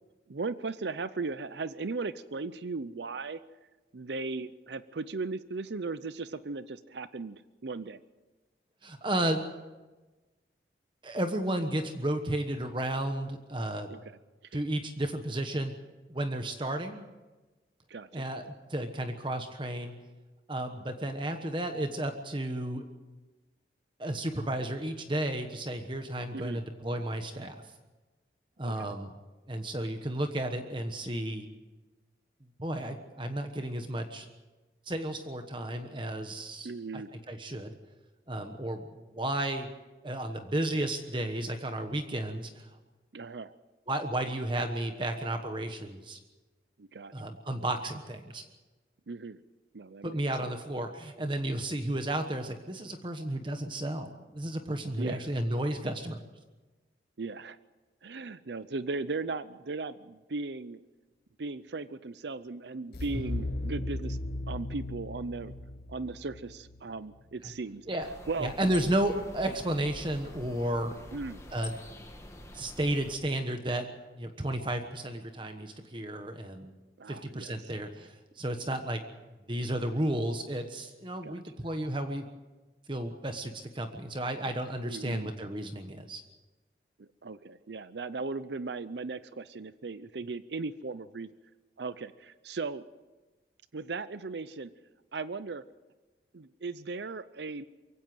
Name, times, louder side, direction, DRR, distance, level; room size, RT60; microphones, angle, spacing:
voice 1, 0.3-3.4 3.9-8.0 13.9-14.0 14.5-14.6 17.9-18.2 26.3-26.6 28.6-28.9 36.6-37.1 43.1-43.5 46.8-47.1 49.1-49.4 49.7-50.2 55.0-55.2 57.2-57.6 58.0-60.8 61.4-64.2 64.5-65.5 65.9-67.9 68.3-68.5 71.1-71.4 77.0-77.5 81.2-81.4 84.8-85.3 87.0-91.3 91.8-92.8 93.7-94.7 95.1-95.6 96.3-97.6, right 3 dB, 80° right, 14 dB, 0.6 m, -37 dB
voice 2, 8.8-9.4 11.0-13.9 14.5-15.7 16.1-17.1 18.1-19.9 20.5-22.8 24.0-27.5 28.6-29.2 29.5-31.5 32.6-34.3 34.9-37.7 38.3-39.7 40.0-42.7 43.9-46.2 47.1-48.4 50.0-56.2 63.1-63.3 67.4-67.5 67.9-68.1 68.4-70.9 71.5-71.7 72.5-73.9 74.2-76.7 77.1-79.0 79.5-82.2 82.9-86.2, right 1 dB, 30° right, 6 dB, 1.2 m, -33 dB
sound 1, 62.9-67.8, left 1 dB, 60° left, 1.2 m, -37 dB
sound 2, 68.0-73.2, left 1 dB, 15° left, 1.8 m, -46 dB
23.0 x 16.5 x 7.9 m, 1.2 s
head